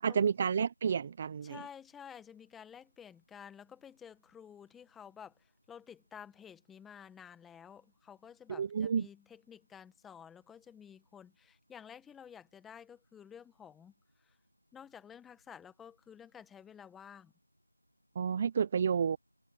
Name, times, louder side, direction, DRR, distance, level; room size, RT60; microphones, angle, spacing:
voice 1, 0.0-1.6 8.5-9.1 18.2-19.2, right 7 dB, 20° right, 0.6 m, -30 dB
voice 2, 1.4-13.9 14.2-14.4 14.7-17.3, left 8 dB, 5° left, 1.5 m, -52 dB
figure-of-eight pair, 170°, 0 cm